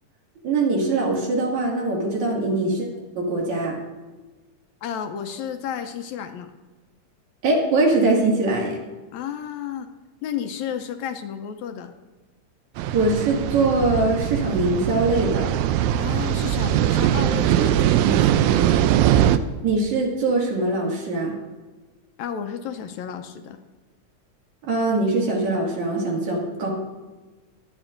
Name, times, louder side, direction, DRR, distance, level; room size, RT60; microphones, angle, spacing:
voice 1, 0.4-2.9 3.2-3.8 7.4-8.8 12.9-15.5 19.6-21.4 24.6-26.7, right 2 dB, 70° right, -2 dB, 3.5 m, -22 dB
voice 2, 4.8-6.5 9.1-9.9 10.2-11.9 16.0-18.9 22.2-23.6, left 8 dB, 75° left, 7 dB, 2.0 m, -32 dB
sound 1, 12.8-19.4, right 11 dB, 85° right, 2.0 m, -21 dB
22.5 x 8.8 x 2.6 m, 1.2 s
omnidirectional pair, 3.4 m